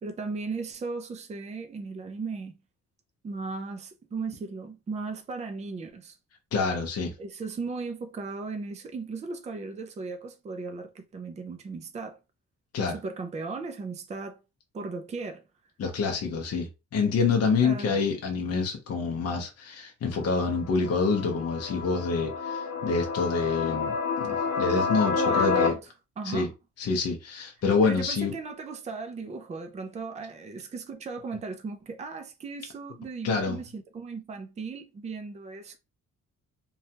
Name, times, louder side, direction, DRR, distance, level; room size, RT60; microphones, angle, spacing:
voice 1, 0.0-2.6 3.2-6.2 7.2-12.2 12.9-14.4 14.7-15.4 17.6-18.0 25.2-25.9 26.2-26.5 27.8-35.8, right 4 dB, 25° right, 0.4 m, -36 dB
voice 2, 6.5-7.1 12.7-13.0 15.8-25.7 26.2-26.5 26.8-28.3 33.2-33.6, left 4 dB, 50° left, 0.7 m, -27 dB
sound 1, 20.1-25.7, left 5 dB, 70° left, 1.0 m, -29 dB
3.0 x 2.3 x 2.7 m
wide cardioid pair, 175°, 31 cm